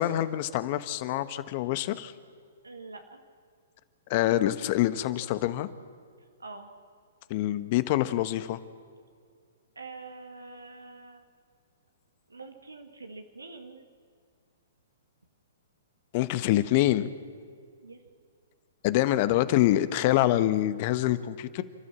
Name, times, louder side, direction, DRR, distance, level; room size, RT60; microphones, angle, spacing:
voice 1, 0.0-2.1 4.1-5.7 7.3-8.6 16.1-17.1 18.8-21.6, left 14 dB, 45° left, 13 dB, 1.1 m, -25 dB
voice 2, 2.6-3.2 6.4-6.7 9.8-11.3 12.3-13.9 17.8-18.0, right 3 dB, 90° right, 5 dB, 1.7 m, -45 dB
29.5 x 12.5 x 7.4 m, 2.2 s
hypercardioid pair, 120°, 0 cm